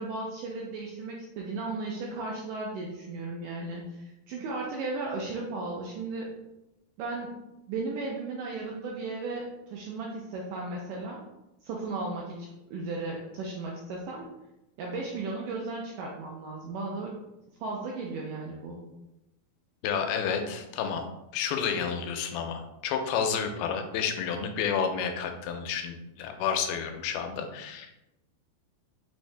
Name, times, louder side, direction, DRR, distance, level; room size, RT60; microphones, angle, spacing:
voice 1, 0.0-6.3 7.0-7.3 7.7-11.2 11.6-14.3 14.8-17.2 17.6-18.8, right 3 dB, 90° right, -2 dB, 1.9 m, -35 dB
voice 2, 19.8-21.0 21.3-28.0, left 7 dB, 85° left, 5 dB, 2.4 m, -30 dB
5.9 x 2.7 x 3.2 m, 0.92 s
omnidirectional pair, 4.4 m